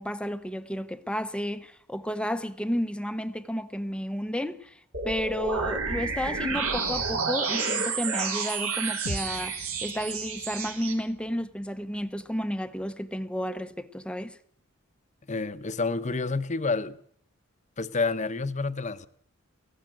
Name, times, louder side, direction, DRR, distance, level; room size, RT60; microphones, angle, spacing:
voice 1, 0.0-14.4, equal, 5° left, 0.8 m, -32 dB
sound 1, 4.9-10.9, right 4 dB, 75° right, 4.6 m, -30 dB
sound 2, 9.1-13.4, left 1 dB, 80° left, 1.4 m, -43 dB
voice 2, 15.3-17.0 17.8-19.1, left 3 dB, 35° left, 0.9 m, -29 dB
18.5 x 15.5 x 9.0 m
head